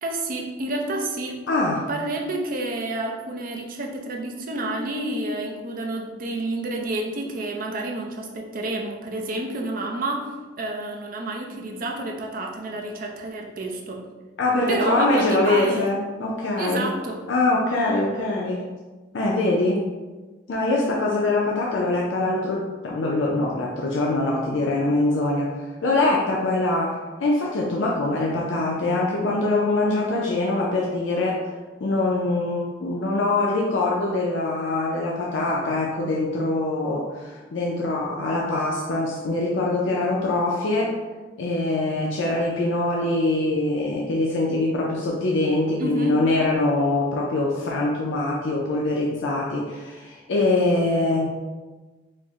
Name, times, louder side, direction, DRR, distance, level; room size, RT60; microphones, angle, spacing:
voice 1, 0.0-1.4 1.9-14.0 14.7-15.9 16.6-17.2 45.8-46.3, right 2 dB, 45° right, 1 dB, 0.5 m, -29 dB
voice 2, 1.5-1.8 14.4-16.9 17.3-18.6 19.1-19.8 20.5-31.4 31.8-40.9 41.4-51.3, left 2 dB, 75° left, -3 dB, 0.5 m, -23 dB
4.3 x 2.1 x 3.5 m, 1.3 s
head